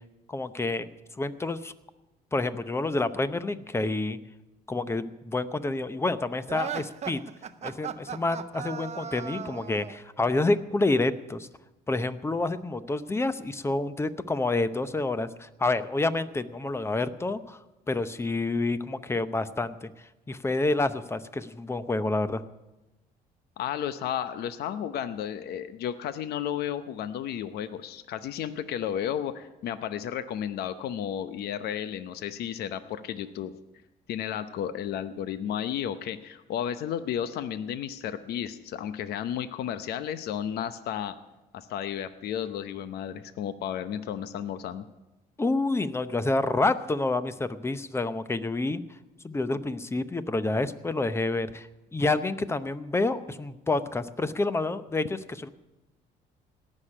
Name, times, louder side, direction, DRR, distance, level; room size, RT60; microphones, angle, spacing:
voice 1, 0.3-0.9 1.2-1.7 2.3-4.2 4.7-7.2 7.6-11.5 11.9-17.6 17.9-22.4 45.4-48.8 49.2-55.5, left 2 dB, 15° left, 13 dB, 0.8 m, -28 dB
sound 1, 6.5-10.0, right 8 dB, 40° right, 0.8 m, -36 dB
voice 2, 23.6-33.5 34.1-41.2 41.5-44.8, left 9 dB, 70° left, 12 dB, 0.8 m, -33 dB
17.5 x 6.5 x 9.9 m, 1.0 s
cardioid pair, 110°, 17 cm